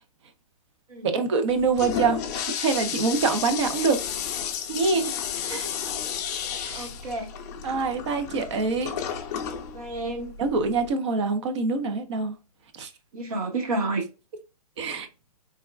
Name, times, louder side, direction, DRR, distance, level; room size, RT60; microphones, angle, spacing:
voice 1, 1.0-2.2 2.5-4.0 4.7-5.1 5.4-5.7 6.6-6.9 7.6-8.9 10.4-12.4 12.7-12.9 14.8-15.1, right 4 dB, 45° right, 0.6 m, -25 dB
Toilet flush, 1.5-10.9, left 8 dB, 25° left, 0.4 m, -33 dB
voice 2, 6.4-7.3 9.7-10.3 13.1-14.0, right 2 dB, 60° right, 1.2 m, -31 dB
3.4 x 2.2 x 2.2 m
hypercardioid pair, 140°, 20 cm